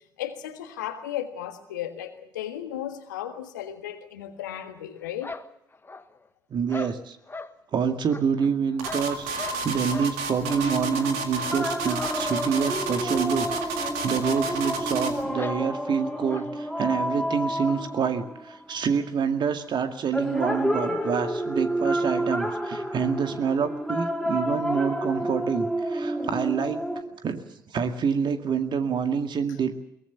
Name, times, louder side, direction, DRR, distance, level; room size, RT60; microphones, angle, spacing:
voice 1, 0.2-5.3, left 11 dB, 80° left, 8 dB, 1.6 m, -35 dB
sound 1, 5.2-6.3 6.7-7.5 8.1-9.6 9.9-10.1 10.4-10.6 11.0-11.1 12.0-12.3 12.5-12.6 13.0-13.1 14.0-14.1 14.3-14.4 15.4-15.6 16.3-16.5, left 3 dB, 20° left, 1.4 m, -39 dB
voice 2, 6.5-7.2 7.7-9.3 9.6-26.8 27.2-29.7, right 6 dB, 50° right, 7 dB, 2.1 m, -27 dB
sound 2, 8.8-15.2, right 3 dB, 75° right, 2.0 m, -31 dB
sound 3, 10.5-18.7 20.1-27.0, equal, ahead, 4.5 m, -30 dB
22.5 x 19.5 x 7.1 m, 0.78 s
figure-of-eight pair, 45°, 10 cm